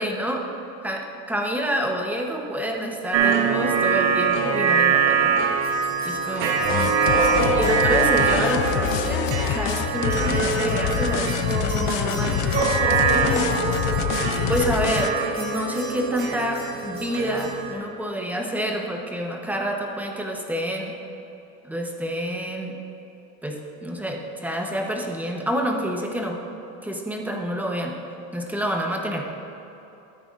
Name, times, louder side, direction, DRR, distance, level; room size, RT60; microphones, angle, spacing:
voice 1, 0.0-0.4 0.8-5.6 6.0-6.9 7.5-12.7 13.1-13.6 14.5-20.9 21.6-22.8 23.4-26.4 26.8-28.0 28.3-29.3, equal, 5° right, 1 dB, 0.9 m, -28 dB
sound 1, 3.1-17.7, right 6 dB, 80° right, 1.3 m, -24 dB
sound 2, 5.6-17.5, right 2 dB, 25° right, 1.9 m, -30 dB
sound 3, 6.6-15.1, left 10 dB, 55° left, 0.5 m, -26 dB
13.5 x 9.0 x 2.5 m, 3.0 s
supercardioid pair, 125°, 40 cm